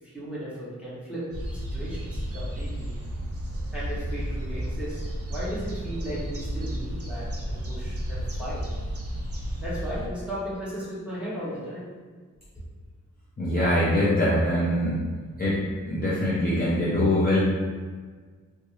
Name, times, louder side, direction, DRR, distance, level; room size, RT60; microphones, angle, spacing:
voice 1, 0.0-1.3 1.5-2.9 3.7-5.0 5.3-8.6 9.6-11.9, equal, 5° right, -10 dB, 1.2 m, -36 dB
sound 1, 1.3-10.1, equal, 50° right, 0.7 m, -32 dB
voice 2, 13.4-15.0 15.4-15.6 15.9-17.4, left 1 dB, 30° left, -8 dB, 0.5 m, -23 dB
3.8 x 2.2 x 3.0 m, 1.5 s
wide cardioid pair, 125°, 31 cm